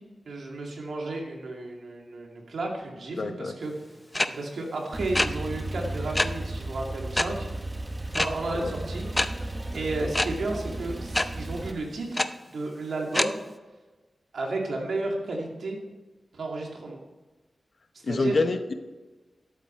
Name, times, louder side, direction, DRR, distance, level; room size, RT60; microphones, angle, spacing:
voice 1, 0.3-3.7 4.3-7.5 8.1-9.1 9.4-13.4 14.3-15.8 16.3-17.0 18.1-18.4, right 2 dB, 85° right, 0 dB, 2.4 m, -33 dB
voice 2, 3.2-3.5 8.6-8.7 18.0-18.7, left 3 dB, 60° left, 8 dB, 0.9 m, -27 dB
sound 1, 4.1-4.3 5.1-5.3 6.1-6.3 7.1-7.3 8.1-8.3 9.1-9.3 10.1-10.3 11.1-11.2 12.1-12.2 13.1-13.3, left 1 dB, 15° left, 0.6 m, -23 dB
Male speech man speaking / Car / Idling, 4.9-11.7, right 1 dB, 20° right, 1.0 m, -34 dB
13.0 x 8.3 x 4.5 m, 1.2 s
wide cardioid pair, 85°, 0 cm